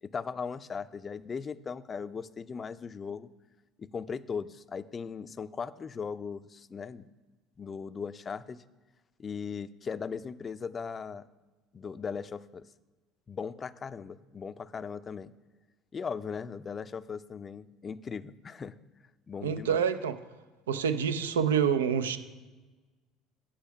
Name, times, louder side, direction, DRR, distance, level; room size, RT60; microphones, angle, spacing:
voice 1, 0.0-3.3 3.8-7.1 7.6-8.6 9.2-11.3 11.7-12.6 13.3-15.3 15.9-18.7 19.3-19.8, left 6 dB, 35° left, 13 dB, 0.4 m, -38 dB
voice 2, 19.4-20.2 20.7-22.2, right 7 dB, 85° right, 11 dB, 0.4 m, -27 dB
9.0 x 4.8 x 5.8 m, 1.2 s
hypercardioid pair, 65°, 0 cm